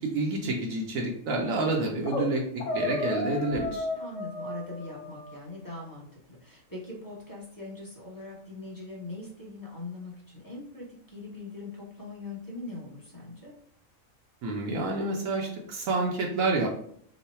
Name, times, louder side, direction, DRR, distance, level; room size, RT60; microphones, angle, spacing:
voice 1, 0.0-3.9 14.4-16.8, right 2 dB, 80° right, -1 dB, 1.0 m, -29 dB
sound 1, 2.1-2.3 2.6-5.4, left 2 dB, 65° left, 1.0 m, -33 dB
voice 2, 3.9-13.5, left 2 dB, 20° left, -5 dB, 0.8 m, -41 dB
3.0 x 2.1 x 4.2 m, 0.65 s
omnidirectional pair, 1.4 m